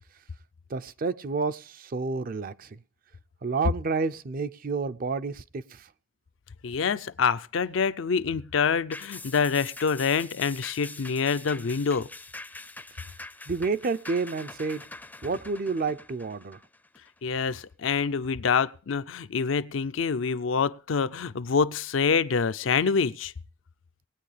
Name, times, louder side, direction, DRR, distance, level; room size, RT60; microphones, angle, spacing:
voice 1, 0.7-2.8 3.4-5.8 13.5-14.8 15.2-16.6, right 4 dB, 45° right, 0.5 m, -30 dB
voice 2, 6.6-12.1 17.2-23.3, left 5 dB, 75° left, 0.5 m, -26 dB
sound 1, 8.9-17.6 18.0-18.1, left 2 dB, 10° left, 0.5 m, -44 dB
20.0 x 9.1 x 3.3 m
head